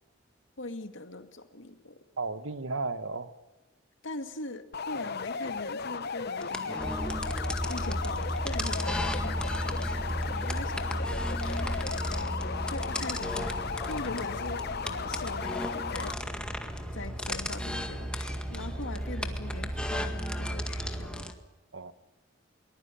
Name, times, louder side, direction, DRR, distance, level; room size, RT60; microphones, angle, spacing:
voice 1, 0.6-2.0 4.0-6.8 7.7-11.8 12.7-13.5 13.9-16.1 16.9-21.3, left 2 dB, 75° left, 7 dB, 2.3 m, -41 dB
voice 2, 2.2-3.3 21.7-21.9, right 3 dB, 85° right, 13 dB, 1.3 m, -34 dB
sound 1, 4.7-16.1, left 5 dB, 55° left, 0.9 m, -36 dB
sound 2, 6.4-21.3, left 1 dB, 5° left, 1.9 m, -38 dB
sound 3, 6.8-21.2, equal, 30° right, 3.4 m, -35 dB
23.0 x 20.5 x 9.9 m, 1.2 s
head